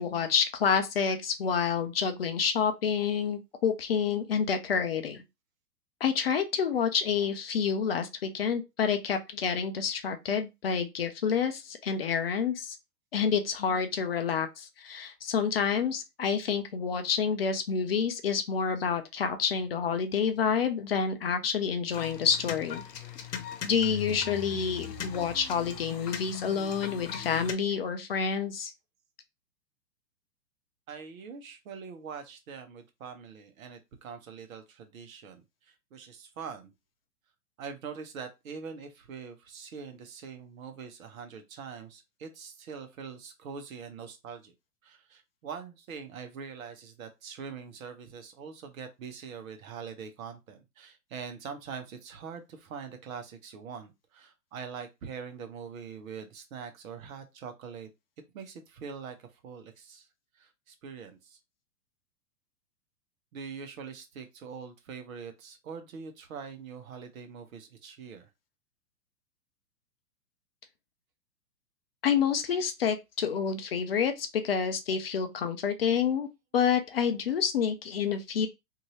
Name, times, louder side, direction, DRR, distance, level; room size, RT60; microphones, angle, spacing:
voice 1, 0.0-5.2 6.0-12.8 13.1-22.8 23.6-28.7 72.0-76.3 76.5-78.5, left 7 dB, 40° left, 0.4 m, -28 dB
sound 1, 21.9-27.5, left 8 dB, 75° left, 0.9 m, -39 dB
voice 2, 30.9-36.7 37.6-44.5 44.8-57.9 58.3-60.1 60.3-61.4 63.3-68.3, right 6 dB, 55° right, 1.0 m, -43 dB
2.7 x 2.6 x 3.0 m
hypercardioid pair, 120°, 49 cm